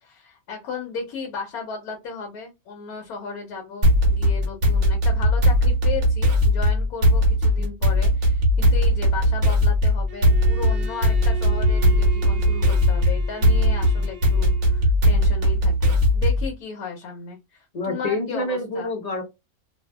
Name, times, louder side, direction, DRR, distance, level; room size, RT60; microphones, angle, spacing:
voice 1, 0.0-18.9, left 5 dB, 85° left, 2 dB, 1.1 m, -35 dB
sound 1, 3.8-16.5, equal, 55° right, 1.1 m, -19 dB
Bowed string instrument, 10.1-14.9, right 2 dB, 85° right, 1.1 m, -39 dB
voice 2, 17.7-19.2, left 2 dB, 40° left, 2 dB, 0.6 m, -27 dB
2.6 x 2.5 x 2.2 m, 0.22 s
omnidirectional pair, 1.5 m